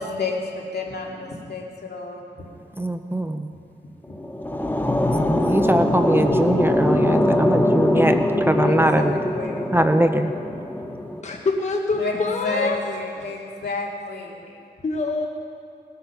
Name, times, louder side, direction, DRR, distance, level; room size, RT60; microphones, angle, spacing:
voice 1, 0.0-2.3 8.6-9.0 9.3-9.8 12.0-12.1 12.4-14.4, left 3 dB, 65° left, -1 dB, 2.3 m, -30 dB
voice 2, 2.8-3.5 5.2-8.2 8.5-9.2 9.7-10.3, right 1 dB, 10° right, 7 dB, 0.5 m, -21 dB
sound 1, 4.0-11.2, left 1 dB, 10° left, 0.9 m, -22 dB
voice 3, 11.2-12.9 14.5-15.3, left 3 dB, 40° left, 1 dB, 1.1 m, -25 dB
19.5 x 8.0 x 5.8 m, 2.5 s
wide cardioid pair, 85°, 18 cm